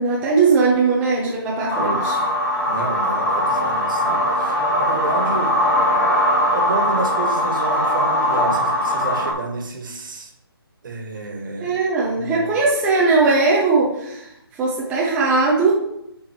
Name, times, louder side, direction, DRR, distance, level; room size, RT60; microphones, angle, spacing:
voice 1, 0.0-2.3 11.6-15.7, right 4 dB, 10° right, -5 dB, 0.7 m, -19 dB
sound 1, 1.7-9.3, equal, 10° left, 1.2 m, -20 dB
voice 2, 2.7-6.0 6.5-10.3 10.8-11.8 12.2-12.5, right 3 dB, 50° right, 2 dB, 1.7 m, -30 dB
9.0 x 4.7 x 3.0 m, 0.80 s
figure-of-eight pair, 155°, 13 cm